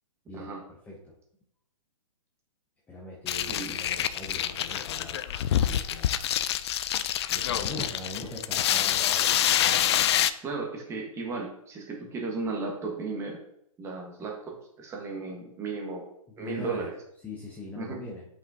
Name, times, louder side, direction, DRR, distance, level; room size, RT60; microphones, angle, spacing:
voice 1, 0.3-1.1 2.9-5.2 5.5-6.2 7.3-9.4 16.3-16.9 17.2-18.3, left 2 dB, 10° left, -4 dB, 0.8 m, -41 dB
sound 1, 3.3-10.3, left 11 dB, 50° left, 0.4 m, -26 dB
voice 2, 10.4-13.4 13.8-16.1 16.4-16.9 17.8-18.0, right 4 dB, 15° right, 0 dB, 1.3 m, -35 dB
7.3 x 5.2 x 2.7 m, 0.73 s
hypercardioid pair, 140°, 18 cm